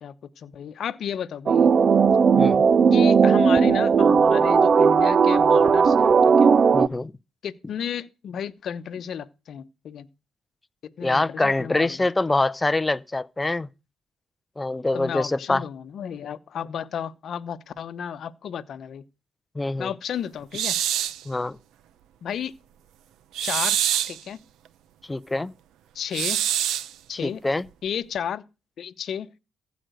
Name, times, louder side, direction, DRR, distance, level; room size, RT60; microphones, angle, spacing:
voice 1, 0.0-1.7 2.9-6.5 7.4-10.1 10.8-12.1 14.9-19.0 19.8-20.8 22.2-22.5 23.4-23.8 24.1-24.4 25.9-26.4 27.1-27.4 27.8-28.4 28.8-29.3, left 8 dB, 60° left, 0.9 m, -33 dB
sound 1, 1.5-6.9, right 6 dB, 50° right, 0.5 m, -17 dB
voice 2, 6.7-7.1 11.0-13.7 14.6-15.6 19.6-19.9 21.3-21.6 25.1-25.5 27.2-27.6, left 2 dB, 15° left, 0.6 m, -24 dB
sound 2, 20.5-21.2 23.3-24.2 26.1-26.9, right 11 dB, 85° right, 0.7 m, -25 dB
15.0 x 5.2 x 7.8 m
cardioid pair, 90°, 0 cm